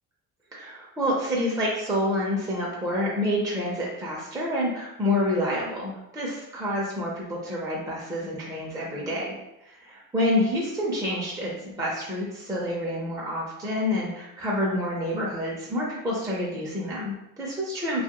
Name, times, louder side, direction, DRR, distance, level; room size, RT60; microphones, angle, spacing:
voice 1, 0.5-9.3 9.6-18.0, left 1 dB, 10° right, -5 dB, 0.5 m, -28 dB
2.4 x 2.2 x 2.9 m, 0.87 s
cardioid pair, 100°, 40 cm